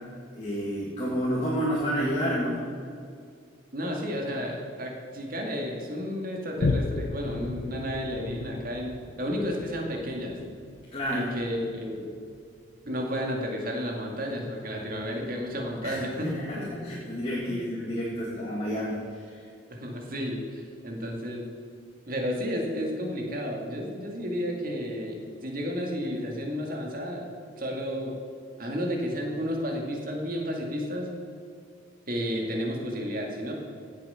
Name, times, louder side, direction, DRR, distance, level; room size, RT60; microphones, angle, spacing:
voice 1, 0.4-2.6 10.9-11.3 15.8-19.4, equal, 30° left, -5 dB, 1.9 m, -30 dB
voice 2, 3.7-10.4 11.1-12.1 12.9-16.3 16.6-16.7 17.5-17.6 19.7-21.5 22.1-27.3 27.6-28.1 28.6-31.1 32.1-33.5, equal, 45° right, 0 dB, 2.2 m, -32 dB
Boom, 6.6-13.5 14.0-14.1, left 3 dB, 55° left, 0.5 m, -35 dB
16.0 x 7.5 x 5.7 m, 2.3 s
head